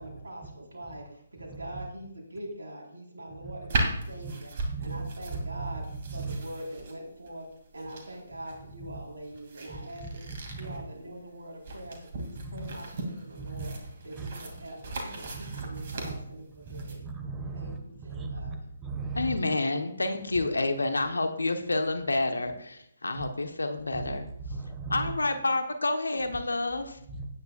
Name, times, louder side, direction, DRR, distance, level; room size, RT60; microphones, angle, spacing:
voice 1, 0.0-5.9 6.1-7.5 7.7-10.2 10.6-13.8 14.0-17.1 17.5-18.6, right 1 dB, 60° right, -1 dB, 4.2 m, -43 dB
sound 1, 3.7-17.0, right 2 dB, 40° right, 2.5 m, -37 dB
voice 2, 4.7-5.7 6.1-6.3 10.5-10.8 12.4-12.7 13.4-13.7 14.2-14.3 15.5-16.1 16.7-18.5 18.8-19.4 23.2-23.3 24.4-25.1 27.2-27.3, right 4 dB, 15° right, 5 dB, 1.4 m, -37 dB
voice 3, 19.1-24.3 24.9-27.0, left 2 dB, 70° left, 7 dB, 1.1 m, -29 dB
17.0 x 9.4 x 2.4 m, 0.74 s
figure-of-eight pair, 140°, 0 cm